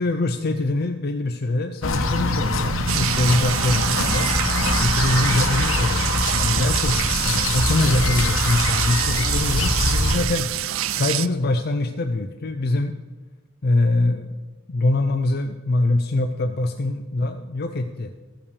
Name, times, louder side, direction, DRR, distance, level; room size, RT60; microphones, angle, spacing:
voice 1, 0.0-10.5 11.0-12.9 13.6-14.3 14.7-18.1, left 2 dB, 50° left, 7 dB, 0.5 m, -23 dB
sound 1, 1.8-10.2, left 2 dB, 90° left, 1.0 m, -23 dB
sound 2, 2.9-11.3, right 12 dB, 80° right, 0.4 m, -26 dB
14.5 x 5.8 x 6.8 m, 1.3 s
head